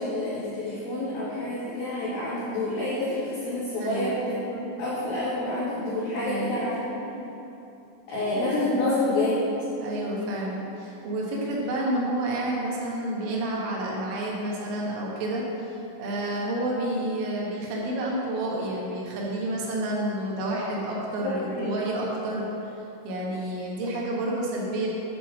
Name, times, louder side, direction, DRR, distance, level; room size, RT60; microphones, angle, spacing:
voice 1, 0.0-7.0 8.1-9.3 21.2-21.7, left 2 dB, 70° left, -9 dB, 2.3 m, -28 dB
voice 2, 3.8-4.3 6.2-6.8 8.7-8.9 9.8-22.5 23.0-24.9, right 1 dB, 75° right, -4 dB, 3.7 m, -30 dB
9.1 x 4.6 x 6.1 m, 2.9 s
omnidirectional pair, 5.9 m